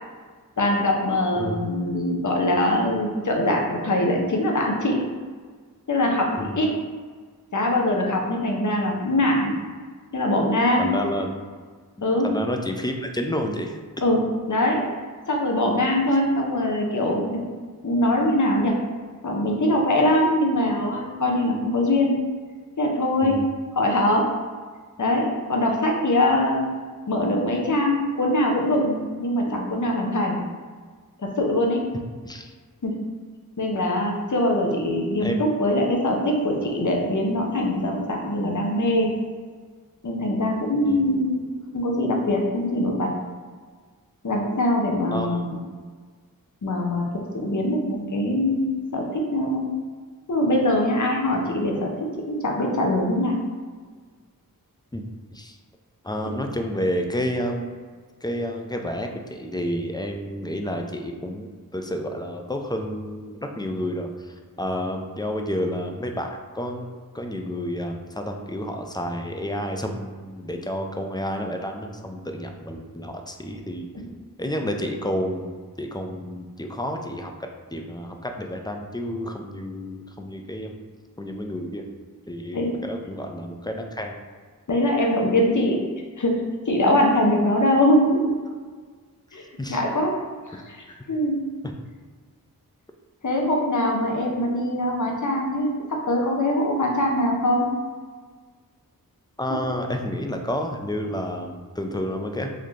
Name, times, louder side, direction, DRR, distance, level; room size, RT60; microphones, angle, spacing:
voice 1, 0.6-5.0 5.9-6.8 7.5-9.5 10.1-10.9 12.0-12.3 14.0-14.2 14.5-14.8 15.3-17.4 17.8-18.7 19.2-22.2 22.8-23.4 23.8-24.3 25.0-26.7 27.1-30.4 31.2-31.8 32.8-32.9 33.6-39.1 40.0-41.4 41.7-43.1 44.2-45.6 46.6-49.7 50.3-53.4 73.9-74.1 82.5-82.8 84.7-85.8 86.2-86.3 86.7-88.3 89.3-89.4 89.7-90.2 90.5-91.4 93.2-97.7, left 1 dB, 55° left, 0 dB, 0.8 m, -22 dB
voice 2, 10.8-11.4 12.0-13.8 23.2-23.5 32.2-32.5 35.2-35.4 40.8-41.1 45.1-45.5 54.9-55.0 55.3-55.6 56.0-57.7 58.2-66.9 67.1-73.9 74.4-80.8 81.2-81.9 82.3-84.1 89.6-89.8 99.4-102.5, equal, 10° left, 3 dB, 0.4 m, -30 dB
4.1 x 2.7 x 3.1 m, 1.5 s
wide cardioid pair, 60°, 35 cm